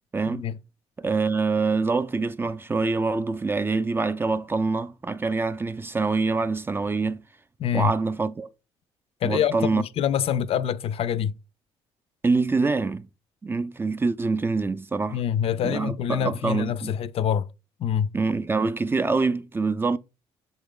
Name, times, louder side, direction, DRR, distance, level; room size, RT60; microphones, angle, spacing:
voice 1, 0.1-0.5 1.0-7.2 7.7-8.5 9.2-9.8 12.2-13.1 13.4-15.2 15.6-16.9 18.1-20.0, right 4 dB, 20° right, 0.3 m, -25 dB
voice 2, 7.6-7.9 9.2-11.4 15.1-17.5 17.8-18.1, left 9 dB, 60° left, 0.4 m, -25 dB
7.0 x 3.9 x 3.7 m
supercardioid pair, 80°, 11 cm